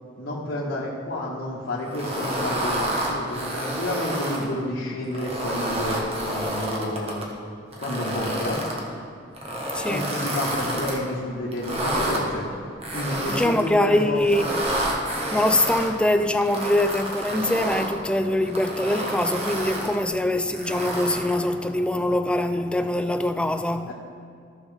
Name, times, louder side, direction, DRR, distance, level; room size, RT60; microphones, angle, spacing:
voice 1, 0.2-7.3 7.8-8.6 9.8-12.5 12.9-14.4 23.9-24.0, left 1 dB, 90° left, 1.4 m, -30 dB
sound 1, 1.9-4.4 5.0-7.2 7.7-8.8 9.3-11.0 11.5-12.2 12.8-13.7 14.2-15.9 16.4-17.9 18.4-20.0 20.5-21.4, right 1 dB, 30° right, 1.4 m, -29 dB
voice 2, 9.4-10.1 13.3-14.4 15.1-23.9, left 1 dB, 5° left, 0.3 m, -23 dB
14.5 x 6.2 x 3.4 m
head